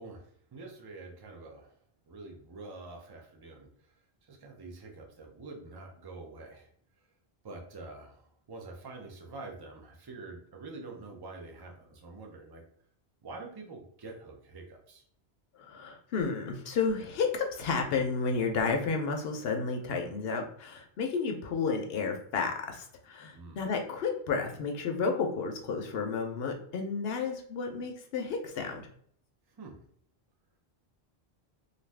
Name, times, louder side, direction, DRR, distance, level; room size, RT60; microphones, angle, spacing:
voice 1, 0.0-1.7 2.1-3.7 4.2-6.7 7.4-12.6 13.2-15.0 23.3-23.6 29.5-29.8, right 3 dB, 30° right, 1 dB, 0.4 m, -46 dB
voice 2, 15.5-28.8, left 5 dB, 75° left, 3 dB, 0.8 m, -32 dB
2.6 x 2.4 x 3.2 m, 0.63 s
omnidirectional pair, 1.0 m